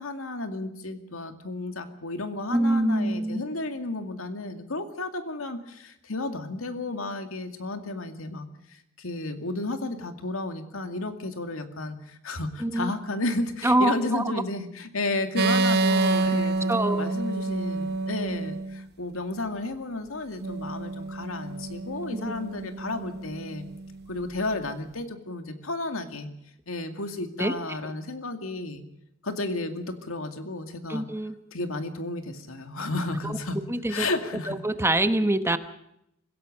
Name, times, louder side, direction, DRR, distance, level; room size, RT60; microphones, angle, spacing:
voice 1, 0.0-23.7 24.1-26.3 26.7-28.8 29.2-31.1 31.5-34.6, left 2 dB, 75° left, 7 dB, 2.3 m, -32 dB
voice 2, 2.5-3.4 12.6-12.9 13.6-14.2 16.7-17.0 27.4-27.5 30.9-31.4 33.2-33.4 33.7-34.1 34.5-35.6, right 1 dB, 10° right, 11 dB, 1.0 m, -24 dB
sound 1, 15.4-18.8 20.4-24.0, right 3 dB, 50° right, 0.8 m, -28 dB
25.0 x 16.5 x 6.6 m, 0.79 s
head